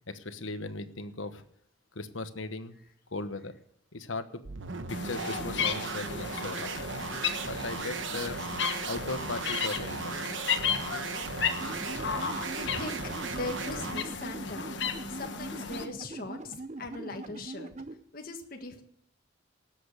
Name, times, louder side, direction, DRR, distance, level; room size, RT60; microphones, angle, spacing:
voice 1, 0.1-1.4 1.9-2.8 3.1-3.5 3.9-4.4 5.0-6.7 7.4-8.4 8.9-10.2, left 3 dB, 90° left, 10 dB, 1.2 m, -37 dB
sound 1, 4.4-14.1, right 4 dB, 80° right, 1.0 m, -37 dB
sound 2, 4.9-15.8, left 6 dB, 65° left, 1.3 m, -34 dB
sound 3, 11.6-17.9, right 2 dB, 35° right, 0.7 m, -42 dB
voice 2, 11.8-17.7 18.1-18.8, left 3 dB, 45° left, 3 dB, 1.6 m, -41 dB
18.5 x 7.8 x 6.6 m, 0.67 s
head